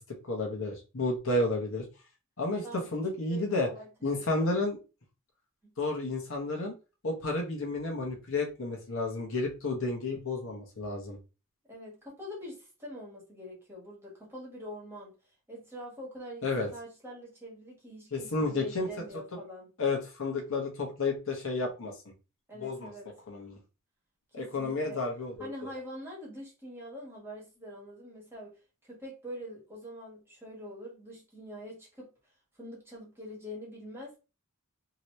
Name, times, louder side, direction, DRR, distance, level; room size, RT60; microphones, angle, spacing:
voice 1, 0.3-1.8 2.4-2.6 2.9-3.7 4.0-4.8 5.8-6.7 7.0-11.2 16.4-16.7 18.1-18.9 19.8-21.9 22.6-22.9 23.3-23.6 24.3-25.5, left 2 dB, 60° left, 0 dB, 1.0 m, -31 dB
voice 2, 3.2-3.9 4.2-4.5 5.6-5.7 11.7-15.1 15.5-19.7 22.5-23.1 24.4-25.0 25.4-28.5 28.8-32.1 32.6-34.2, equal, 10° right, -4 dB, 1.3 m, -44 dB
2.9 x 2.8 x 3.0 m, 0.31 s
head